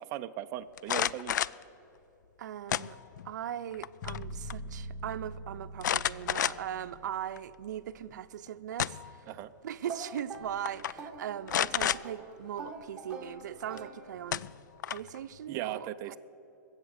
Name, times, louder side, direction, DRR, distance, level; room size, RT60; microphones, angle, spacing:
voice 1, 0.0-1.4 9.3-9.5 15.5-16.2, right 13 dB, 30° right, 0.4 m, -38 dB
sound 1, 0.8-1.6 2.7-3.3 3.7-4.2 4.5-4.6 5.8-6.8 7.4-7.5 8.5-9.2 10.2-10.4 10.7-10.9 11.5-12.0 13.8-13.9 14.3-15.2, left 10 dB, 80° left, 0.4 m, -30 dB
voice 2, 2.4-3.0 3.2-9.3 9.6-14.4 14.9-16.2, right 10 dB, 75° right, 0.6 m, -39 dB
sound 2, 4.0-8.1, equal, 40° left, 1.3 m, -43 dB
sound 3, 9.9-14.5, right 4 dB, 10° right, 1.5 m, -45 dB
21.5 x 7.9 x 6.6 m
hypercardioid pair, 145°, 10 cm